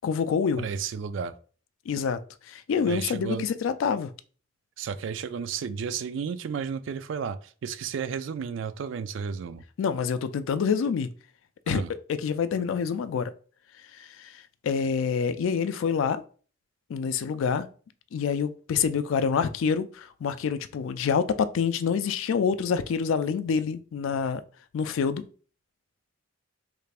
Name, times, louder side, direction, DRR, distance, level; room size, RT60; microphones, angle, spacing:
voice 1, 0.0-0.7 1.9-2.2 2.5-4.1 9.8-11.1 11.7-11.8 12.1-13.3 14.2-14.3 14.6-16.2 16.9-17.7 18.1-24.4 24.7-25.2, left 6 dB, 75° left, 0.3 m, -26 dB
voice 2, 0.6-1.3 2.9-3.5 4.8-9.6 11.7-11.9, right 6 dB, 65° right, 0.3 m, -32 dB
3.2 x 2.4 x 3.3 m
head